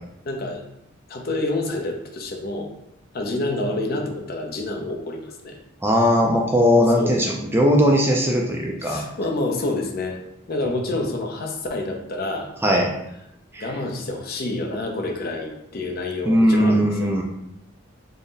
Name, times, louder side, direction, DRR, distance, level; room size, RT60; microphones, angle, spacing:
voice 1, 0.2-0.6 1.1-2.7 3.1-5.6 7.0-7.2 8.8-10.2 10.5-12.5 13.6-17.1, left 2 dB, 50° left, 2 dB, 0.5 m, -28 dB
voice 2, 5.8-9.0 12.6-12.9 13.5-13.6 16.3-17.2, equal, 10° right, 0 dB, 0.3 m, -19 dB
3.9 x 2.0 x 3.8 m, 0.83 s
head